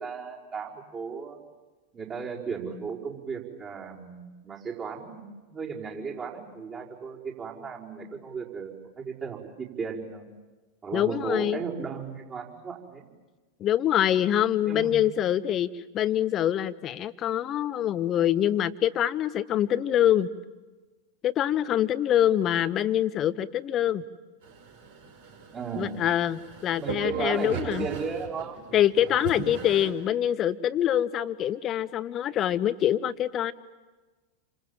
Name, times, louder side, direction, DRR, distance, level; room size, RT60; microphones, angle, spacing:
voice 1, 0.0-1.4 1.9-10.3 10.8-13.1 14.6-15.0 25.5-26.0 26.7-28.6, right 5 dB, 25° right, -3 dB, 5.2 m, -35 dB
voice 2, 10.9-11.6 13.6-20.3 21.2-24.0 25.8-27.9 28.7-33.5, left 11 dB, 30° left, 16 dB, 0.9 m, -25 dB
sound 1, 24.4-29.9, right 4 dB, 55° right, 4.6 m, -39 dB
29.0 x 26.0 x 7.4 m, 1.3 s
figure-of-eight pair, 90°, 0 cm